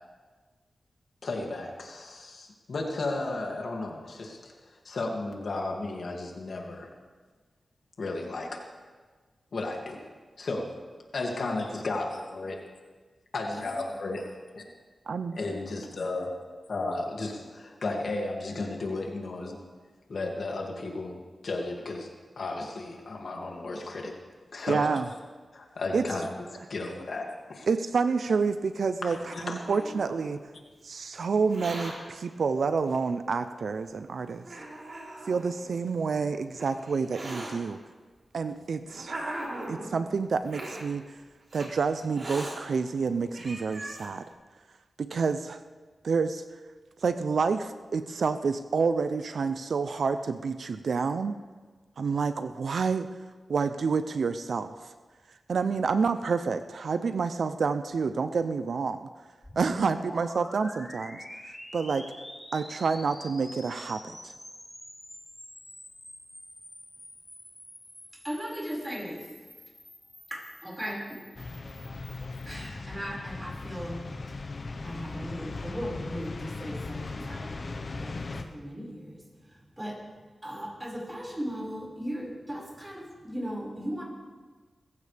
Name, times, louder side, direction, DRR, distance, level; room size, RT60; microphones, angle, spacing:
voice 1, 1.2-4.5 4.8-6.9 8.0-8.6 9.5-10.0 10.4-10.7 11.1-12.6 13.3-14.2 14.5-14.6 15.3-16.3 16.7-19.6 20.1-21.2 21.4-22.1 22.4-24.2 24.5-25.0 25.5-26.3 26.7-27.7 29.0-29.6, left 2 dB, 70° left, 0 dB, 2.4 m, -34 dB
voice 2, 15.1-15.4 24.7-25.0 25.9-26.0 27.7-29.2 29.4-30.4 30.8-34.4 35.3-37.8 38.3-39.1 39.7-41.0 41.5-44.2 45.0-45.6 46.0-46.4 47.0-51.4 52.0-53.1 53.5-54.7 55.5-59.1 59.6-61.2 61.7-62.1 62.5-64.3, right 5 dB, 75° right, 10 dB, 0.6 m, -28 dB
Hiss, 28.7-30.4 31.3-31.9 32.9-33.0 33.8-33.9 34.4-35.5 36.3-37.5 38.4-39.9 40.5-40.8 41.5-41.7 42.1-42.6 43.0-43.1 43.3-44.1, right 1 dB, 55° right, 3.6 m, -39 dB
sound 1, 59.4-72.8, left 1 dB, 10° left, 3.4 m, -47 dB
voice 3, 68.2-69.2 70.3-71.0 72.5-74.0 74.8-79.2 79.8-80.0 80.4-84.0, equal, 20° right, -3 dB, 5.4 m, -37 dB
sound 2, 71.3-78.4, left 3 dB, 55° left, 1.1 m, -38 dB
22.5 x 15.0 x 3.5 m, 1.4 s
wide cardioid pair, 75°, 0 cm